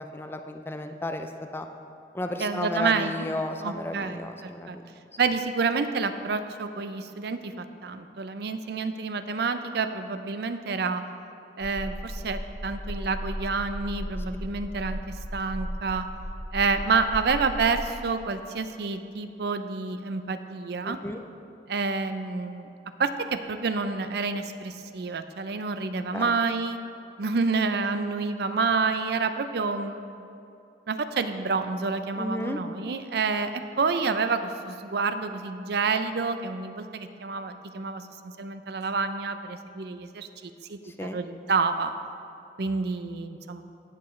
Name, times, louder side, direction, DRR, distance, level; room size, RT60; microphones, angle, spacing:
voice 1, 0.1-1.7 2.1-4.8 20.8-21.2 26.1-26.3 32.2-32.6 40.8-41.2, left 1 dB, 15° left, 6 dB, 0.4 m, -33 dB
voice 2, 2.4-3.3 3.6-4.8 5.2-11.0 11.6-16.1 16.5-21.0 21.7-22.7 23.0-26.8 27.2-30.3 30.9-41.9 42.6-43.6, right 4 dB, 65° right, 9 dB, 0.5 m, -28 dB
sound 1, 11.6-18.1, equal, 25° right, 1.9 m, -36 dB
17.5 x 6.9 x 3.2 m, 2.6 s
head